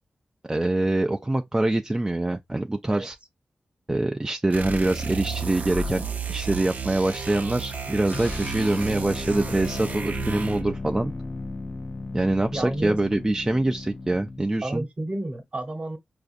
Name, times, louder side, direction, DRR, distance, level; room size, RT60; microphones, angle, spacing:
voice 1, 0.5-3.2 3.9-11.1 12.1-14.8, right 2 dB, 20° right, 0.3 m, -25 dB
sound 1, 4.5-10.8, right 5 dB, 60° right, 0.6 m, -32 dB
sound 2, 8.1-14.5, left 3 dB, 35° left, 0.5 m, -35 dB
voice 2, 12.5-13.0 14.6-16.0, right 1 dB, 45° right, 1.1 m, -31 dB
4.9 x 2.5 x 2.5 m
wide cardioid pair, 75°, 3 cm